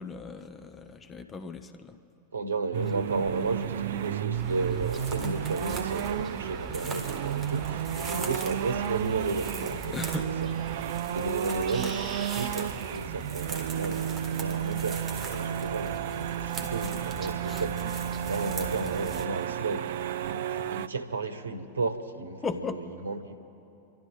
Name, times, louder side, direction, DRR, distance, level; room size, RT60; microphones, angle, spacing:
voice 1, 0.0-2.0 9.9-10.3 17.5-17.6 22.4-22.9, left 4 dB, 20° left, 0.8 m, -37 dB
voice 2, 2.3-10.0 10.4-10.5 11.1-19.9 20.3-22.4 23.0-23.4, right 3 dB, 70° right, 1.0 m, -33 dB
sound 1, 2.7-20.9, right 11 dB, 55° right, 0.4 m, -33 dB
sound 2, 4.3-19.3, right 3 dB, 15° right, 2.3 m, -40 dB
28.0 x 12.5 x 3.9 m
figure-of-eight pair, 90°, 0 cm